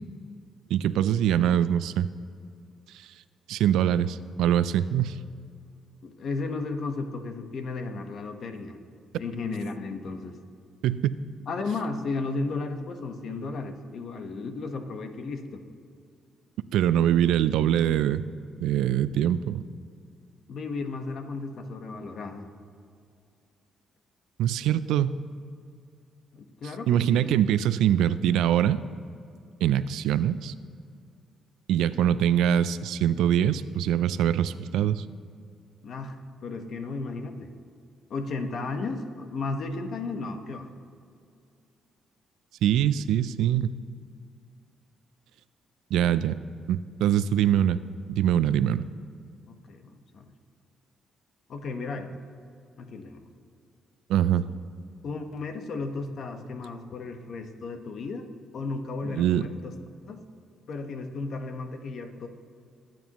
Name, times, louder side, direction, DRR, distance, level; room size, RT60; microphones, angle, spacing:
voice 1, 0.7-2.1 3.5-5.2 10.8-11.2 16.7-18.2 18.6-19.6 24.4-25.2 26.9-28.8 29.6-30.5 31.7-35.0 42.6-43.7 45.9-46.4 46.7-47.8 48.1-48.8 54.1-54.5 59.1-59.4, right 10 dB, 85° right, 14 dB, 0.4 m, -23 dB
voice 2, 6.0-8.8 9.2-10.4 11.5-15.6 20.5-22.5 26.3-27.3 35.8-37.5 38.1-40.7 49.5-50.3 51.5-52.1 52.8-53.2 55.0-58.3 58.5-59.7 60.1-60.2 60.7-62.3, left 3 dB, 60° left, 6 dB, 1.3 m, -34 dB
23.5 x 9.0 x 3.0 m, 2.4 s
cardioid pair, 90°, 0 cm